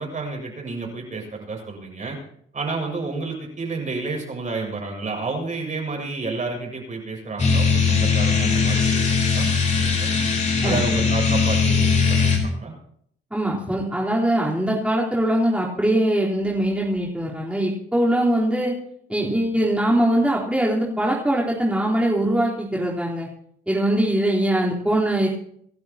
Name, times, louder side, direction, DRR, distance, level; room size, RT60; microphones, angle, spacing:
voice 1, 0.0-2.2 2.5-9.5 9.7-10.1 10.6-12.7, right 3 dB, 40° right, 1 dB, 6.4 m, -30 dB
sound 1, 7.4-12.4, left 5 dB, 35° left, 4.4 m, -20 dB
voice 2, 13.3-18.7 19.1-23.3 23.7-25.3, right 1 dB, 5° right, -5 dB, 4.0 m, -22 dB
27.0 x 12.0 x 3.0 m, 0.67 s
cardioid pair, 90°, 20 cm